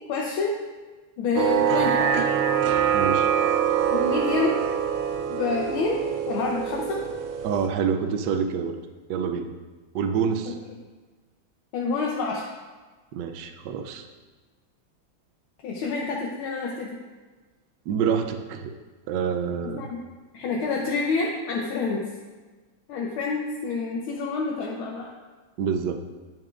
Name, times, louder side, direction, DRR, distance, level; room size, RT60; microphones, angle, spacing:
voice 1, 0.1-0.6 1.2-2.1 3.9-4.6 5.3-6.0 6.3-7.0 10.4-10.5 11.7-12.5 15.6-17.0 19.6-20.0 20.3-22.1 22.9-25.1, left 4 dB, 85° left, -1 dB, 1.6 m, -28 dB
sound 1, 1.4-7.7, right 8 dB, 90° right, 1.4 m, -24 dB
voice 2, 2.9-3.3 7.4-8.8 9.1-9.5 9.9-10.6 13.1-14.1 17.9-18.8 19.1-19.8 25.6-26.0, right 7 dB, 70° right, 7 dB, 1.1 m, -27 dB
10.5 x 6.7 x 2.4 m, 1.3 s
omnidirectional pair, 2.2 m